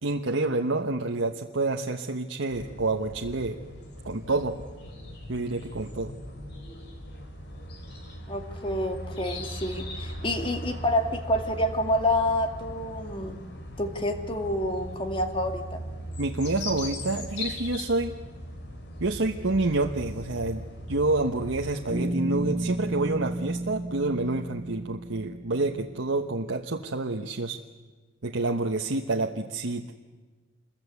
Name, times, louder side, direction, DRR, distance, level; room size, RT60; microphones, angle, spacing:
voice 1, 0.0-3.6 4.0-4.6 5.3-6.1 16.2-18.1 19.0-20.6 20.9-27.6 28.2-29.9, right 2 dB, 90° right, 2 dB, 1.2 m, -28 dB
sound 1, 2.5-22.0, equal, 60° left, 3.9 m, -39 dB
voice 2, 8.3-13.4 13.8-15.8, left 1 dB, 25° left, 6 dB, 2.2 m, -28 dB
Bass guitar, 21.9-26.0, right 1 dB, 10° left, 4.5 m, -32 dB
27.0 x 22.0 x 8.3 m, 1.3 s
head